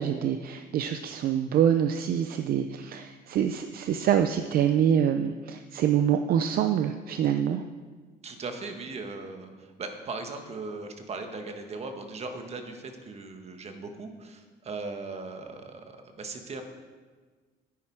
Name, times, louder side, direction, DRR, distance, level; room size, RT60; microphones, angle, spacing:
voice 1, 0.0-7.6, right 9 dB, 60° right, 8 dB, 0.6 m, -25 dB
voice 2, 8.2-16.6, right 3 dB, 40° right, 5 dB, 1.5 m, -38 dB
10.5 x 9.3 x 4.7 m, 1.4 s
cardioid pair, 110°, 17 cm